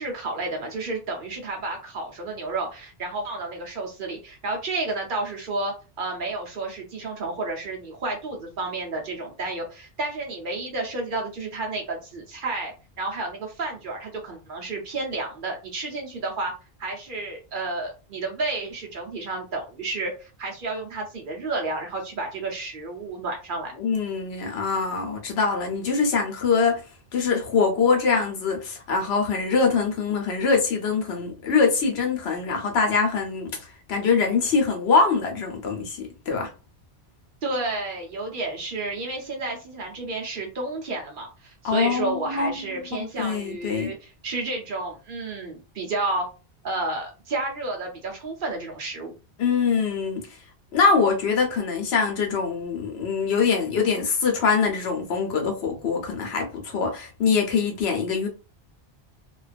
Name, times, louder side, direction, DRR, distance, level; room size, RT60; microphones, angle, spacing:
voice 1, 0.0-16.5 16.8-23.7 37.4-46.3 46.6-49.1, right 2 dB, 55° right, 0.8 m, -31 dB
voice 2, 23.8-26.8 27.1-36.5 41.6-43.9 49.4-50.2 50.7-58.3, left 5 dB, 75° left, 0.9 m, -23 dB
2.4 x 2.3 x 2.4 m
omnidirectional pair, 1.1 m